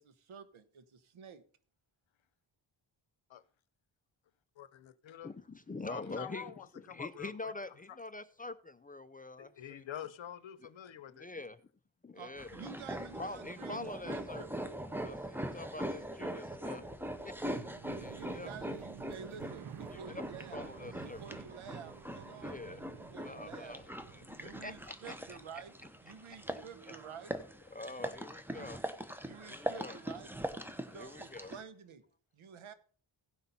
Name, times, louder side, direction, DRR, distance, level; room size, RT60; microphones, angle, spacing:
voice 1, 0.0-1.4 12.1-14.5 18.1-20.6 21.0-23.8 24.3-25.7 26.0-27.3 28.5-28.7 29.2-30.3 30.9-32.0 32.3-32.7, right 7 dB, 80° right, 1.2 m, -50 dB
voice 2, 4.6-5.3 5.9-7.5 7.9-8.0 9.4-11.3, left 10 dB, 70° left, 0.8 m, -46 dB
voice 3, 5.2-9.8 11.1-11.6 12.0-12.7 13.0-14.7 15.0-16.9 17.2-17.3 17.9-18.7 19.9-21.4 22.3-22.8 23.2-25.6 26.3-26.4 26.9-27.0 27.7-28.8 29.4-30.0 30.7-31.5, left 2 dB, 20° left, 0.4 m, -46 dB
sound 1, 12.4-31.6, equal, 5° right, 0.9 m, -42 dB
sound 2, 16.0-26.2 26.4-27.3, right 9 dB, 45° right, 0.5 m, -52 dB
16.5 x 5.7 x 4.0 m
wide cardioid pair, 110°, 48 cm